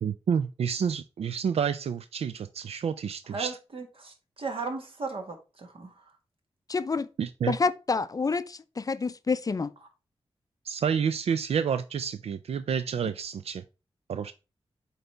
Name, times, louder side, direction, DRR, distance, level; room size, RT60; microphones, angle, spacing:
voice 1, 0.0-3.6 7.2-7.5 10.6-13.6 14.1-14.3, right 7 dB, 80° right, 0.4 m, -29 dB
voice 2, 3.3-6.0, right 4 dB, 60° right, 1.8 m, -36 dB
voice 3, 6.7-7.1 7.5-9.7, left 4 dB, 35° left, 0.4 m, -28 dB
8.0 x 4.0 x 3.4 m
wide cardioid pair, 90°, 10 cm